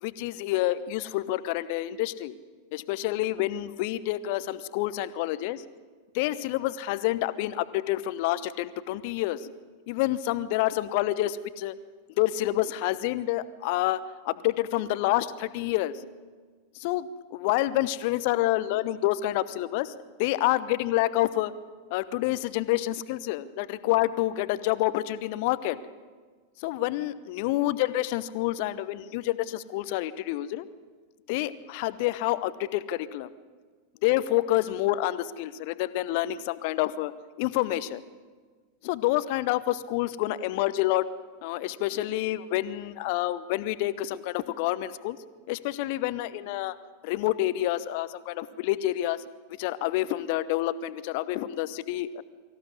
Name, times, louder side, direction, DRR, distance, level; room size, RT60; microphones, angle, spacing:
voice 1, 0.0-2.3 2.7-5.6 6.1-9.5 9.9-11.7 12.2-14.0 14.2-16.1 16.7-21.5 21.9-25.8 26.6-30.7 31.3-33.3 34.0-37.1 37.4-38.0 38.8-41.0 41.4-45.2 45.5-46.8 47.0-49.2 49.6-52.2, left 15 dB, 45° left, 15 dB, 0.9 m, -28 dB
24.0 x 15.0 x 9.7 m, 1.5 s
figure-of-eight pair, 90°, 0 cm